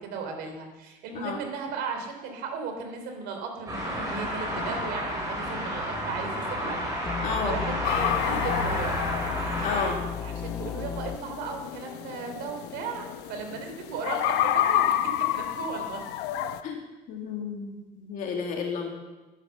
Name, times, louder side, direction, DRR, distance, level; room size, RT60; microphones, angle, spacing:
voice 1, 0.0-6.8 7.1-9.0 10.2-13.0 13.3-16.0, right 5 dB, 70° right, 4 dB, 3.3 m, -36 dB
sound 1, 3.7-9.8, equal, 20° right, 5.2 m, -31 dB
sound 2, 7.0-11.2, left 7 dB, 15° left, 0.5 m, -35 dB
voice 2, 7.2-7.6 9.6-10.0 16.6-16.8 17.1-18.9, left 6 dB, 50° left, 1 dB, 2.2 m, -31 dB
sound 3, 7.8-16.6, left 12 dB, 75° left, 0.9 m, -30 dB
13.0 x 11.5 x 7.0 m, 1.2 s
cardioid pair, 175°, 17 cm